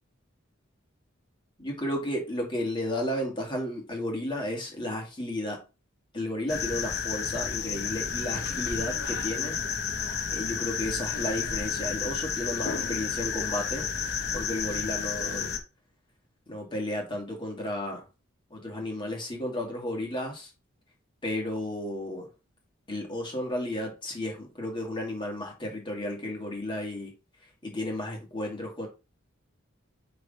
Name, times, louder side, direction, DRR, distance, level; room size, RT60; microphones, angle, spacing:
voice 1, 1.6-5.6 6.1-9.6 10.3-13.9 14.3-15.5 16.5-18.0 18.5-20.5 21.2-22.3 22.9-27.1 27.6-28.9, left 1 dB, 25° left, 2.1 m, -33 dB
sound 1, 6.5-15.6, left 6 dB, 55° left, 0.9 m, -31 dB
6.4 x 3.4 x 5.3 m
head